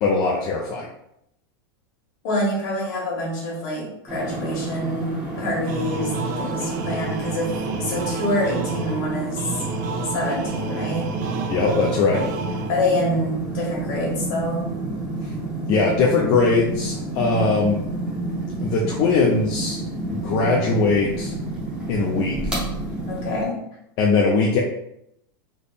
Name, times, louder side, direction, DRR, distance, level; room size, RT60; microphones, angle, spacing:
voice 1, 0.0-0.9 11.5-12.2 15.7-17.8 18.6-19.8 20.1-21.3 21.9-22.5 24.0-24.6, left 4 dB, 30° left, -2 dB, 0.5 m, -20 dB
voice 2, 2.2-9.6 10.0-11.1 12.7-14.6 23.1-23.6, left 1 dB, 50° left, -3 dB, 1.5 m, -26 dB
sound 1, 4.1-23.5, right 2 dB, 5° right, 0.8 m, -30 dB
sound 2, 5.7-13.1, right 4 dB, 45° right, 0.4 m, -31 dB
3.5 x 2.1 x 4.0 m, 0.77 s
supercardioid pair, 165°, 13 cm